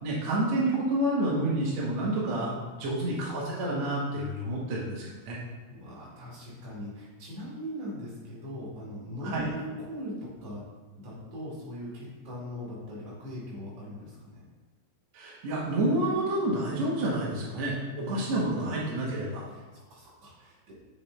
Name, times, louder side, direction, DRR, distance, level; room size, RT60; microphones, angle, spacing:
voice 1, 0.0-5.4 9.3-9.5 15.1-19.4, right 1 dB, 80° right, -5 dB, 1.5 m, -29 dB
voice 2, 2.4-2.8 5.7-10.6 11.0-14.4 17.5-17.6 18.0-18.5 19.5-20.7, left 1 dB, 45° right, -6 dB, 3.2 m, -40 dB
8.1 x 7.0 x 3.4 m, 1.3 s
omnidirectional pair, 5.8 m